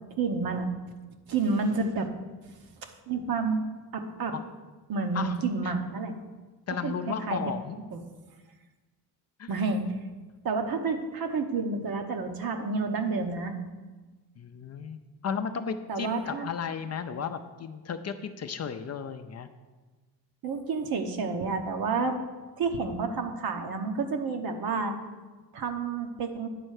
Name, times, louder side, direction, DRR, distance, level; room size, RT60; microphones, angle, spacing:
voice 1, 0.2-0.7 1.3-2.1 2.8-3.6 3.9-4.3 4.9-6.2 6.8-6.9 7.3-7.4 7.9-8.0 9.5-9.9 10.4-13.5 15.9-16.5 20.4-22.2 22.6-24.9 25.5-26.5, right 4 dB, 60° right, 5 dB, 1.0 m, -29 dB
voice 2, 6.7-7.8 9.4-9.5 14.4-19.5, left 6 dB, 40° left, 8 dB, 0.5 m, -34 dB
9.1 x 4.3 x 6.5 m, 1.3 s
cardioid pair, 110°, 40 cm